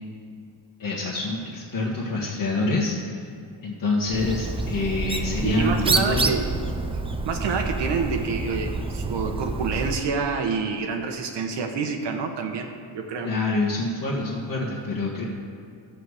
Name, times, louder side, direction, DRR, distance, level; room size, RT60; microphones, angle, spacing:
voice 1, 0.8-3.2 3.6-6.3 13.2-15.2, left 2 dB, 45° left, -6 dB, 1.7 m, -26 dB
Bird, 4.1-10.1, right 3 dB, 10° right, 0.4 m, -28 dB
voice 2, 5.4-6.4 7.3-13.3, right 5 dB, 60° right, 4 dB, 1.1 m, -27 dB
13.0 x 7.6 x 4.9 m, 2.4 s
cardioid pair, 125°, 47 cm